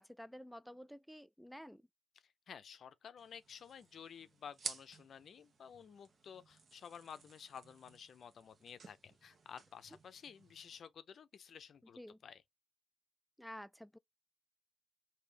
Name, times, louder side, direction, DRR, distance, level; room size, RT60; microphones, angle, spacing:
voice 1, 0.0-1.9 12.0-12.2 13.4-14.0, equal, ahead, 0.3 m, -51 dB
voice 2, 2.2-12.4, left 7 dB, 55° left, 0.5 m, -53 dB
sound 1, 3.2-10.8, right 4 dB, 45° right, 1.0 m, -53 dB
5.1 x 2.7 x 3.3 m
cardioid pair, 90°, 0 cm